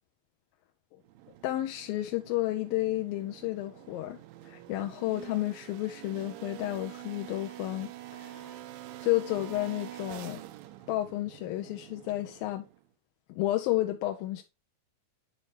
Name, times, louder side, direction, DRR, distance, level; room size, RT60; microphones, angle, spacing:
sound 1, 1.0-12.9, right 14 dB, 80° right, 2.2 m, -46 dB
voice 1, 1.4-8.6 9.0-10.4 10.9-12.7 13.3-14.4, left 16 dB, 75° left, 2.4 m, -32 dB
10.5 x 5.3 x 3.3 m
omnidirectional pair, 4.6 m